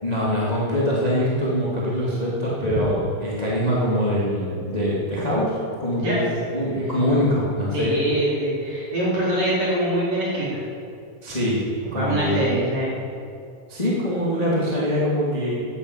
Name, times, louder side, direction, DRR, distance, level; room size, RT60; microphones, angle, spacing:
voice 1, 0.0-6.2 6.5-7.9 11.2-11.6 11.9-12.5 13.7-15.5, equal, 10° left, -6 dB, 2.0 m, -23 dB
voice 2, 6.0-6.3 7.7-10.6 11.9-12.9, right 1 dB, 35° right, -6 dB, 4.9 m, -24 dB
14.5 x 10.0 x 8.4 m, 2.4 s
omnidirectional pair, 5.3 m